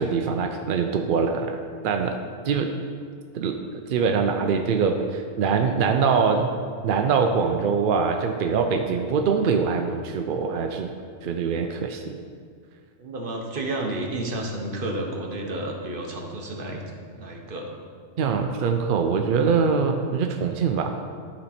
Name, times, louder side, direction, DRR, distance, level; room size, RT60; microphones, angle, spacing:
voice 1, 0.0-1.6 1.8-2.2 2.4-2.7 3.3-3.6 3.9-6.5 6.8-10.9 11.2-12.2 18.2-20.9, right 5 dB, 65° right, 4 dB, 0.5 m, -23 dB
voice 2, 13.0-16.8 17.1-17.8, right 1 dB, 45° right, 1 dB, 1.1 m, -31 dB
11.5 x 4.3 x 4.2 m, 2.1 s
omnidirectional pair, 1.4 m